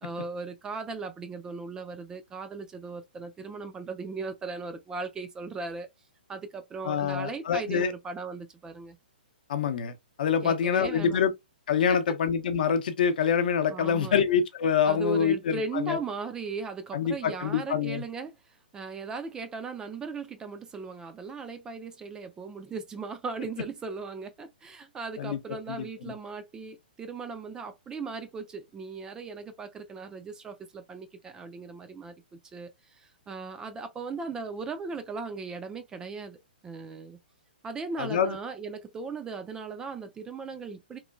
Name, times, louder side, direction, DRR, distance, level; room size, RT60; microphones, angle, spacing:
voice 1, 0.0-5.9 6.3-9.0 10.4-11.2 11.9-12.0 13.7-14.2 14.8-18.3 18.7-32.1 32.5-36.4 36.6-37.2 37.6-41.0, right 4 dB, 10° right, 0.3 m, -37 dB
voice 2, 6.8-7.9 9.5-11.3 11.7-16.0 16.9-18.0 25.2-25.4 25.7-26.1 38.0-38.4, left 7 dB, 60° left, 0.6 m, -26 dB
3.0 x 2.2 x 2.4 m
hypercardioid pair, 140°, 5 cm